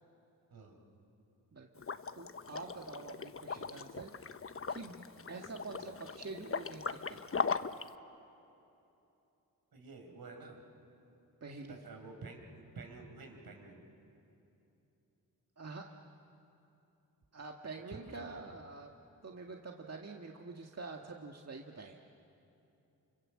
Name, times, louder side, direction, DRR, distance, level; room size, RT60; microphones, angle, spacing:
voice 1, 0.5-1.0 9.7-10.6 11.7-13.8 17.9-18.3, right 3 dB, 70° right, 3 dB, 5.5 m, -50 dB
voice 2, 1.5-1.8 2.2-4.3 4.7-7.3 11.4-11.8 15.6-15.9 17.3-19.0 19.2-22.0, right 3 dB, 40° right, 1 dB, 2.0 m, -46 dB
Liquid, 1.8-7.9, left 5 dB, 35° left, 1.0 m, -39 dB
28.0 x 25.0 x 7.8 m, 2.9 s
cardioid pair, 55°, 38 cm